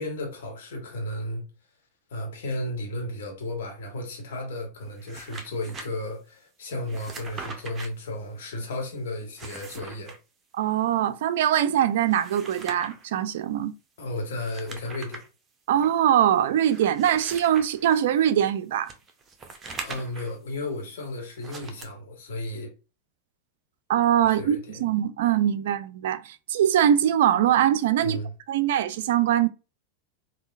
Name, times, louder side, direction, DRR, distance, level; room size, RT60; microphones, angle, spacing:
voice 1, 0.0-1.4 2.1-10.1 14.0-15.2 19.8-22.7 24.2-24.8 28.0-28.3, left 1 dB, 65° left, 1.2 m, -34 dB
sound 1, 4.9-5.9 6.8-7.9 9.2-10.2 12.0-13.1 14.3-15.3 15.8-15.9 16.6-18.0 18.9-20.4 21.4-21.8, right 4 dB, 25° right, 0.7 m, -41 dB
voice 2, 10.6-13.7 15.7-18.9 23.9-28.2 28.5-29.5, right 10 dB, 60° right, 0.3 m, -22 dB
3.7 x 2.3 x 2.4 m
figure-of-eight pair, 90°, 0 cm